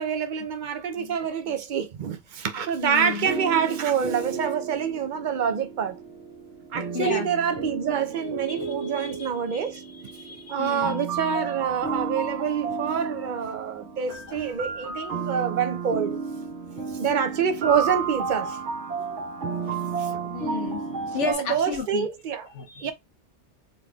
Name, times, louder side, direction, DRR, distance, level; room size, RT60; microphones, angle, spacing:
voice 1, 0.0-6.0 6.7-9.8 10.5-16.2 16.9-18.6 20.0-20.3 21.2-22.5 22.8-22.9, right 7 dB, 50° right, 0.6 m, -27 dB
voice 2, 2.8-3.3 6.9-7.3 8.2-9.7 10.2-11.0 18.9-19.3 20.3-22.1 22.5-22.9, left 5 dB, 90° left, 1.3 m, -33 dB
sound 1, 3.0-21.3, right 5 dB, 85° right, 1.6 m, -33 dB
3.8 x 3.4 x 2.3 m
omnidirectional pair, 1.2 m